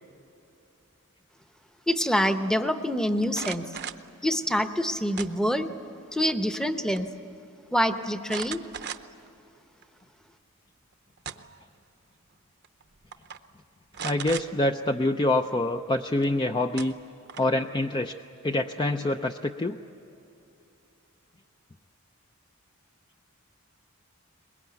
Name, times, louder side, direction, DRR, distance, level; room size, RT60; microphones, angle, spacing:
voice 1, 1.9-3.7 4.2-5.7 6.1-7.1 7.7-8.6, equal, 5° left, 8 dB, 0.8 m, -26 dB
sound 1, 3.2-4.1 5.2-5.8 6.2-6.7 7.0-7.1 8.3-9.3 9.8-9.9 10.9-11.7 12.6-12.8 13.1-13.4 13.9-14.5 16.2-16.3 16.8-17.6, right 8 dB, 50° right, 0.8 m, -37 dB
voice 2, 14.0-16.9 17.4-18.1 18.4-19.8, left 1 dB, 20° left, 5 dB, 0.5 m, -26 dB
23.0 x 21.5 x 9.3 m, 2.8 s
head